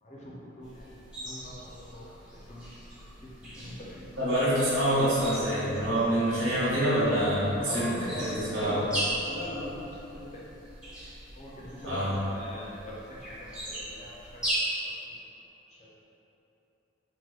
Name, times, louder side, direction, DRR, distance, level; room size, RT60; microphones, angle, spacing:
voice 1, 0.0-0.9 1.2-2.1 2.5-4.4 7.7-8.8 9.1-9.9 10.1-10.3 11.4-14.4 14.8-15.2 15.7-15.9, left 1 dB, 35° left, -6 dB, 0.5 m, -42 dB
sound 1, 0.6-14.6, right 1 dB, 5° right, 0.6 m, -40 dB
voice 2, 4.2-8.8 11.8-12.1, equal, 85° right, -10 dB, 1.2 m, -26 dB
4.3 x 2.1 x 2.3 m, 3.0 s
head